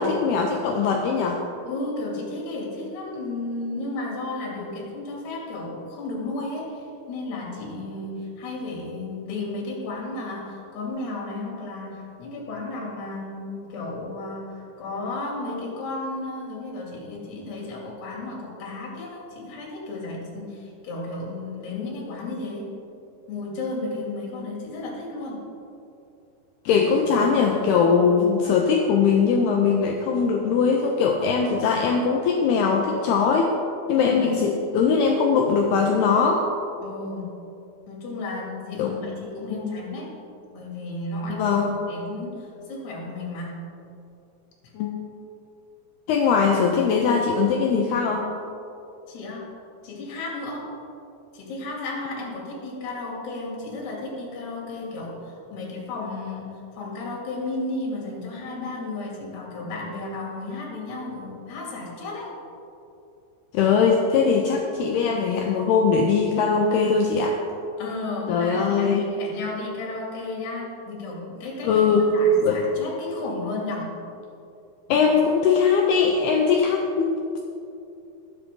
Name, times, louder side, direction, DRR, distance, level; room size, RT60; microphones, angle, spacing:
voice 1, 0.0-1.4 26.7-33.6 33.9-36.4 38.8-38.9 39.5-39.7 41.3-41.8 44.7-45.0 46.1-48.3 63.5-67.4 68.3-69.0 71.6-72.1 72.4-72.6 74.9-77.4, left 5 dB, 80° left, 1 dB, 2.4 m, -21 dB
voice 2, 1.7-22.7 23.3-25.5 31.4-31.8 34.0-34.3 36.8-37.3 37.9-40.1 40.5-43.6 44.6-44.7 49.1-49.5 49.8-50.7 51.3-62.3 67.8-74.0, left 2 dB, 65° left, -3 dB, 4.5 m, -33 dB
19.5 x 8.3 x 3.8 m, 2.7 s
omnidirectional pair, 5.4 m